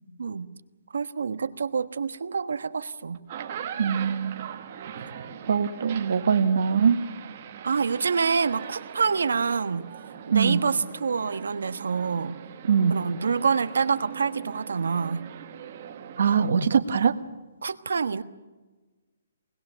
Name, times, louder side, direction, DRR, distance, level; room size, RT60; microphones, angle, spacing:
voice 1, 0.2-0.5 0.9-3.2 7.6-9.8 10.3-12.4 12.9-15.3 17.6-18.2, right 5 dB, 85° right, 11 dB, 1.3 m, -27 dB
sound 1, 3.1-16.5, right 8 dB, 25° right, 1.4 m, -41 dB
voice 2, 3.8-4.3 5.5-7.0 10.3-10.6 12.6-13.0 16.2-17.1, right 6 dB, 55° right, 9 dB, 1.4 m, -22 dB
24.5 x 20.5 x 6.9 m, 1.2 s
hypercardioid pair, 180°, 0 cm